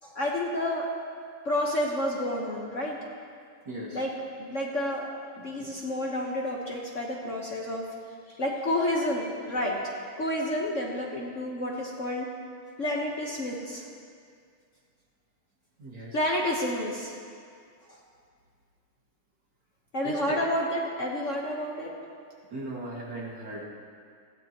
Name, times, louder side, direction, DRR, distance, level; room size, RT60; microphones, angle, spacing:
voice 1, 0.0-0.9 1.4-3.0 3.9-4.1 4.4-5.1 5.4-7.8 8.3-9.8 10.2-12.3 12.8-13.9 16.1-17.2 17.9-18.0 19.9-21.9, left 1 dB, 40° left, -2 dB, 1.4 m, -30 dB
voice 2, 3.6-4.0 5.4-5.7 15.8-16.2 20.0-20.4 22.5-23.6, right 1 dB, 55° right, -5 dB, 2.9 m, -38 dB
20.0 x 16.0 x 3.0 m, 2.2 s
omnidirectional pair, 2.3 m